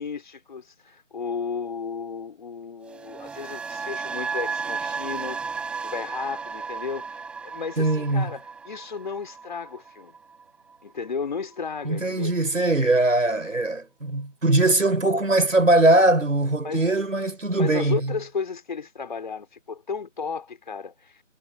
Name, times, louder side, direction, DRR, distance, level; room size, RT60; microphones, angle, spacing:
voice 1, 0.0-10.1 10.8-12.3 16.6-17.0 17.5-21.2, left 5 dB, 40° left, 4.5 m, -34 dB
sound 1, 2.8-10.9 11.2-11.5, right 5 dB, 5° right, 5.4 m, -34 dB
voice 2, 7.8-8.3 11.8-18.1, right 2 dB, 85° right, 4.5 m, -21 dB
figure-of-eight pair, 165°, 38 cm